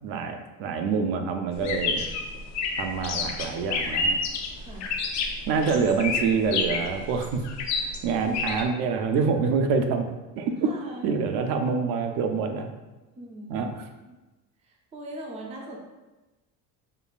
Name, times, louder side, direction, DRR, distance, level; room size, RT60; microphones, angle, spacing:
voice 1, 0.0-2.0 2.8-4.2 5.5-7.4 7.8-10.0 10.4-10.7 11.0-12.7 13.5-13.9, right 5 dB, 75° right, 5 dB, 0.5 m, -26 dB
sound 1, 1.6-8.6, left 4 dB, 50° left, 0.5 m, -29 dB
voice 2, 4.5-5.0 10.6-11.1 13.2-13.7 14.6-15.8, right 1 dB, 20° right, -1 dB, 0.4 m, -41 dB
5.2 x 2.2 x 2.4 m, 1.1 s
cardioid pair, 170°, 35 cm